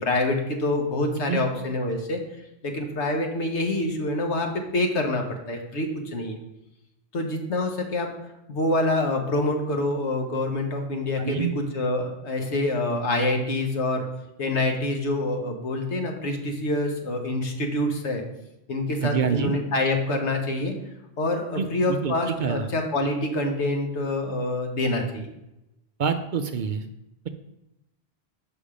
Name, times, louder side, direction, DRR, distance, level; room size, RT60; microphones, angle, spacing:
voice 1, 0.0-2.2 2.6-6.4 7.1-8.1 8.5-14.0 14.4-18.2 18.7-20.7 21.2-25.3, left 2 dB, 90° left, 3 dB, 1.4 m, -26 dB
voice 2, 11.2-11.5 19.0-19.5 21.5-22.7 26.0-26.8, right 6 dB, 60° right, 8 dB, 0.6 m, -26 dB
7.0 x 5.2 x 5.0 m, 0.91 s
omnidirectional pair, 1.1 m